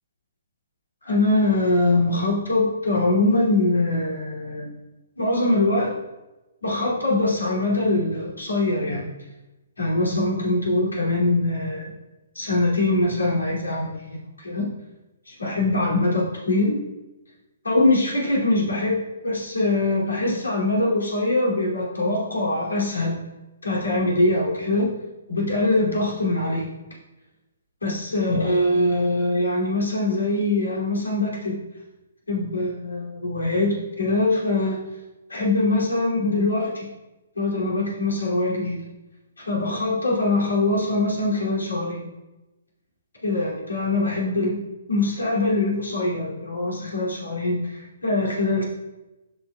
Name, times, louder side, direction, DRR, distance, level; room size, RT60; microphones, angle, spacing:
voice 1, 1.0-4.7 5.2-5.9 6.6-9.0 9.8-11.9 12.3-14.7 15.3-16.8 17.6-23.1 23.6-25.0 25.3-26.7 27.8-31.6 32.3-34.8 35.3-36.9 37.3-38.8 39.4-42.1 43.2-44.6 44.9-48.6, left 2 dB, 85° left, -4 dB, 2.6 m, -23 dB
11.5 x 5.9 x 2.3 m, 1.0 s
figure-of-eight pair, 130°, 0 cm